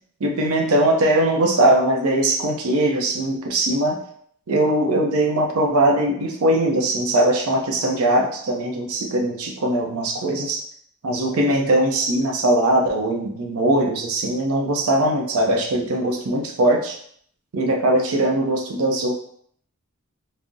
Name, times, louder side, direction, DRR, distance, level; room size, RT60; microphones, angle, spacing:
voice 1, 0.2-4.0 4.5-10.6 11.0-17.0 17.5-19.1, right 1 dB, 80° right, 1 dB, 0.5 m, -20 dB
3.6 x 2.0 x 2.5 m, 0.63 s
head